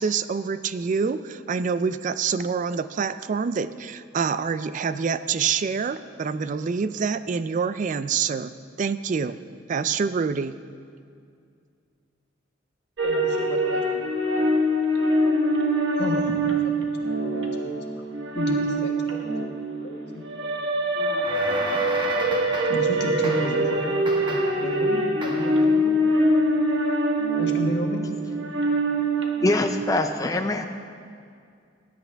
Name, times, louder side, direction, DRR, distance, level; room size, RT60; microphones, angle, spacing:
voice 1, 0.0-9.4 9.7-10.6, right 5 dB, 40° right, 13 dB, 0.3 m, -26 dB
voice 2, 13.0-14.2 15.9-17.7 18.3-19.3 19.8-20.6 22.7-26.0 27.4-28.0, left 1 dB, 65° left, 1 dB, 1.5 m, -33 dB
sound 1, 13.0-30.0, right 1 dB, 75° right, 1.3 m, -24 dB
sound 2, 21.0-22.9 23.2-23.7 24.1-24.7 25.2-25.6, right 1 dB, 25° right, 1.2 m, -34 dB
voice 3, 29.4-30.7, left 2 dB, 20° left, 5 dB, 0.5 m, -23 dB
19.0 x 10.5 x 3.4 m, 2.3 s
head